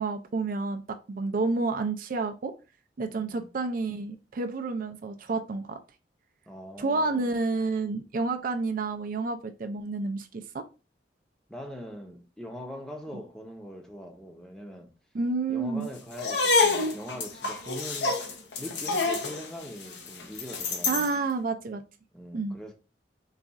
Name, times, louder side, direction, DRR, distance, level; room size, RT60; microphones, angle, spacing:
voice 1, 0.0-2.5 3.0-5.8 6.8-10.6 15.1-15.9 20.9-21.8 22.3-22.6, right 3 dB, 50° right, 0.4 m, -30 dB
voice 2, 3.1-3.5 6.5-7.4 11.5-14.9 15.5-18.2 18.6-21.1 22.1-22.7, equal, 5° left, 0.6 m, -42 dB
sound 1, 16.1-21.1, left 3 dB, 75° left, 0.8 m, -27 dB
4.0 x 2.3 x 3.4 m
head